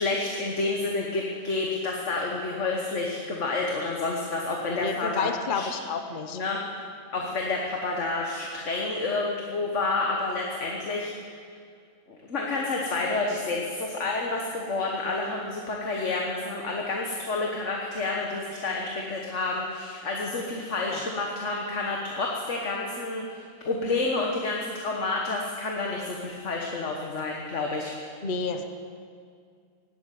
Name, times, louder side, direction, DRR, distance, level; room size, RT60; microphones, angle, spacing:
voice 1, 0.0-5.7 6.3-6.6 7.1-11.4 12.1-27.9, left 3 dB, 60° left, 0 dB, 1.7 m, -29 dB
voice 2, 4.7-6.4 20.9-21.0 28.2-28.6, left 5 dB, 40° left, 6 dB, 1.0 m, -30 dB
17.5 x 8.9 x 9.3 m, 2.2 s
omnidirectional pair, 1.5 m